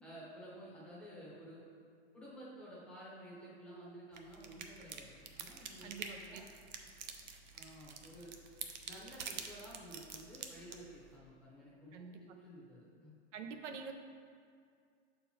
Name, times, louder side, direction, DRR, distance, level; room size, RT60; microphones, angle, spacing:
voice 1, 0.0-1.6 2.1-6.4 7.5-8.3 8.8-13.1, equal, 5° left, -8 dB, 0.8 m, -53 dB
sound 1, 4.1-11.2, right 6 dB, 40° right, 0.5 m, -48 dB
voice 2, 5.8-6.4 11.9-12.2 13.3-13.9, right 5 dB, 75° right, 6 dB, 0.8 m, -46 dB
6.5 x 4.5 x 4.2 m, 2.2 s
supercardioid pair, 165°, 36 cm